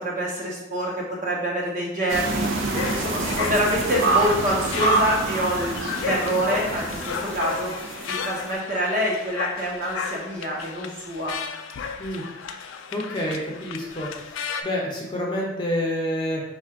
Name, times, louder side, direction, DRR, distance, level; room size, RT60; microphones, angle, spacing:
voice 1, 0.0-2.5 2.8-7.7 8.1-11.4, equal, 40° right, -3 dB, 0.9 m, -26 dB
sound 1, 2.1-8.5, right 3 dB, 85° right, 0.6 m, -27 dB
sound 2, 2.5-14.6, left 6 dB, 80° left, 0.3 m, -33 dB
voice 2, 12.9-16.4, left 1 dB, 25° left, -3 dB, 0.6 m, -28 dB
3.7 x 2.4 x 4.5 m, 0.93 s
head